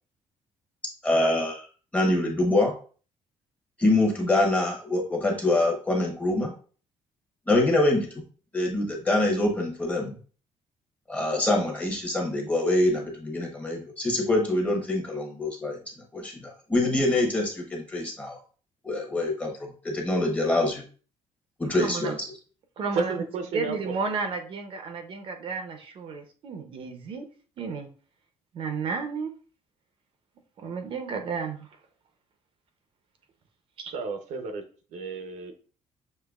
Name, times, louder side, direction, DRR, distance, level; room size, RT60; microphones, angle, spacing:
voice 1, 1.0-1.6 1.9-2.7 3.8-6.5 7.5-8.1 8.5-10.1 11.1-15.8 16.1-16.4 16.7-18.4 18.8-20.8 21.6-22.2, left 2 dB, 10° left, 0 dB, 0.9 m, -25 dB
voice 2, 21.7-22.1 22.8-23.2 23.5-27.3 27.6-27.9 28.5-29.3 30.6-31.7 33.8-33.9, right 5 dB, 50° right, 5 dB, 0.6 m, -32 dB
voice 3, 22.9-23.9 33.9-34.6 34.9-35.5, right 4 dB, 80° right, 6 dB, 0.8 m, -32 dB
6.5 x 2.8 x 2.3 m, 0.40 s
cardioid pair, 170°, 12 cm